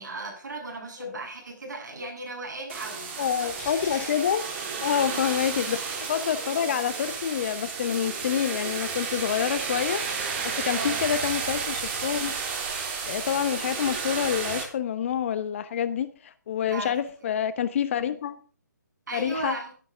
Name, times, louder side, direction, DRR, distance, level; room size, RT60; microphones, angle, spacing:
voice 1, 0.0-3.5 5.1-5.3 10.7-11.0 16.7-16.9 19.1-19.7, right 3 dB, 70° right, 7.0 m, -36 dB
sound 1, 2.7-14.6, right 5 dB, 35° right, 3.5 m, -32 dB
voice 2, 3.2-4.4 4.8-5.8 6.1-10.0 10.4-12.4 13.0-18.3 19.1-19.6, left 9 dB, 40° left, 1.1 m, -27 dB
sound 2, 3.5-4.1, left 3 dB, 10° left, 4.0 m, -41 dB
12.5 x 11.0 x 3.5 m
figure-of-eight pair, 145°, 10 cm